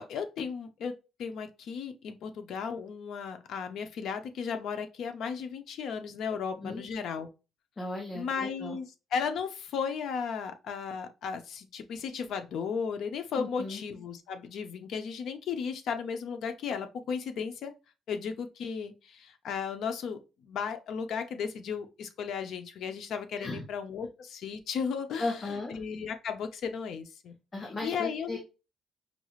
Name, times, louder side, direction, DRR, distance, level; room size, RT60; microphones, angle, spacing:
voice 1, 0.0-7.3 8.1-8.9 9.1-17.7 18.1-25.3 25.7-27.3 27.8-28.4, left 6 dB, 70° left, 0.6 m, -35 dB
voice 2, 7.8-8.8 13.4-13.8 23.4-23.6 25.2-25.7 27.5-28.4, left 2 dB, 25° left, 0.9 m, -36 dB
5.2 x 2.4 x 3.1 m
cardioid pair, 125°, 0 cm